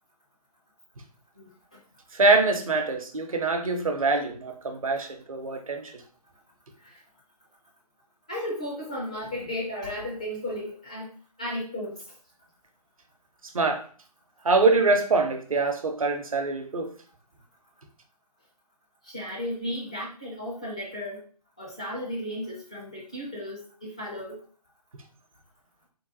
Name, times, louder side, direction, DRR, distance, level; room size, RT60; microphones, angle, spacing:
voice 1, 2.1-5.9 13.5-13.8 14.4-16.9, right 3 dB, 55° right, 5 dB, 0.8 m, -24 dB
voice 2, 8.3-11.1 11.4-12.0 19.0-21.2 21.6-24.4, left 1 dB, 10° left, -5 dB, 0.3 m, -34 dB
3.8 x 2.2 x 3.9 m, 0.42 s
figure-of-eight pair, 145°, 21 cm